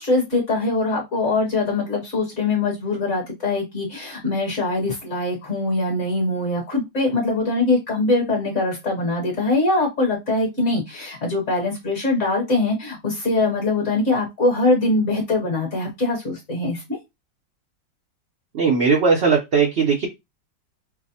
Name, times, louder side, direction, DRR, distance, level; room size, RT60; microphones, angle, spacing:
voice 1, 0.0-17.0, left 2 dB, 45° left, 1.3 m, -22 dB
voice 2, 18.5-20.1, right 5 dB, 65° right, 0.6 m, -18 dB
4.7 x 2.0 x 2.7 m
omnidirectional pair, 1.9 m